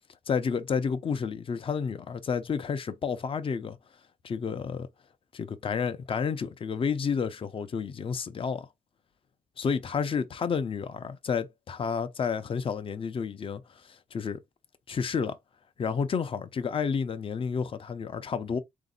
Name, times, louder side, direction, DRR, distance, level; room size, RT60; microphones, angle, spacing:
voice 1, 0.3-3.8 4.2-4.9 5.3-8.7 9.6-14.4 14.9-15.4 15.8-18.6, left 6 dB, 40° left, 0.7 m, -30 dB
4.0 x 2.7 x 3.8 m
cardioid pair, 105°, 14 cm